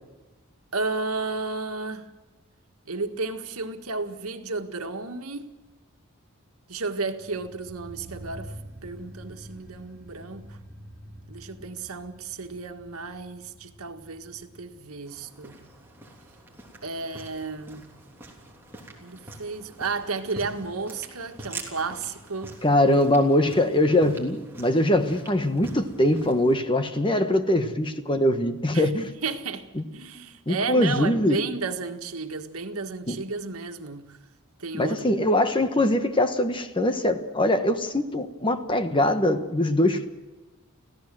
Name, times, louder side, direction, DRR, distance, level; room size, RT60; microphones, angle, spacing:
voice 1, 0.7-2.1 2.9-5.5 6.7-8.6 8.8-10.6 11.3-15.6 16.8-17.9 19.0-22.6 28.7-28.9 29.2-29.7 29.9-34.2 34.6-35.1, right 4 dB, 90° right, 1.7 m, -33 dB
sound 1, 7.0-18.1 18.3-18.4, right 1 dB, 35° right, 3.9 m, -47 dB
sound 2, 15.1-26.6, right 2 dB, 10° right, 3.3 m, -45 dB
voice 2, 22.6-29.1 29.8-29.9 30.5-31.4 33.1-33.2 34.7-40.1, left 1 dB, 25° left, 1.3 m, -22 dB
25.0 x 16.0 x 7.6 m
head